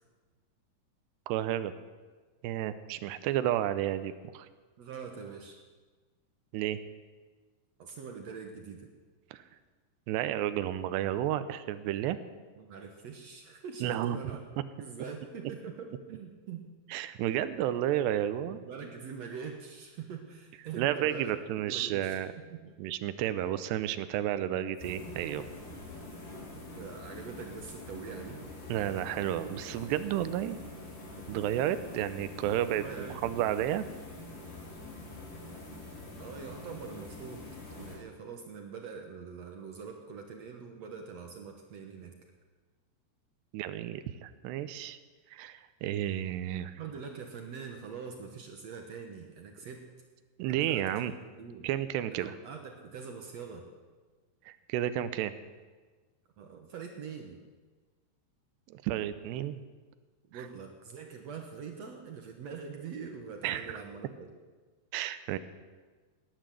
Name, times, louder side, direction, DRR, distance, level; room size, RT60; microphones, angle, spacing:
voice 1, 1.3-1.7 2.4-4.5 6.5-6.8 9.3-9.4 10.1-12.2 13.8-14.2 16.9-18.6 20.8-22.3 22.8-25.4 28.7-30.6 31.3-33.8 43.5-45.0 45.3-46.8 50.4-51.1 51.6-52.4 54.5-55.3 58.7-59.6 60.3-60.5 63.4-63.8 64.9-65.4, right 12 dB, 90° right, 13 dB, 3.0 m, -32 dB
voice 2, 4.8-5.6 7.8-8.9 12.6-14.4 14.8-16.7 18.6-21.4 21.7-22.2 22.5-22.7 26.5-28.4 32.7-33.2 35.7-35.8 36.2-37.4 37.8-42.1 46.8-49.9 50.5-51.0 51.4-51.7 52.1-53.7 56.4-57.4 60.3-64.3, right 6 dB, 70° right, 4 dB, 1.6 m, -43 dB
sound 1, 24.7-38.0, left 2 dB, 80° left, 6.2 m, -45 dB
18.0 x 10.5 x 7.6 m, 1.4 s
omnidirectional pair, 4.7 m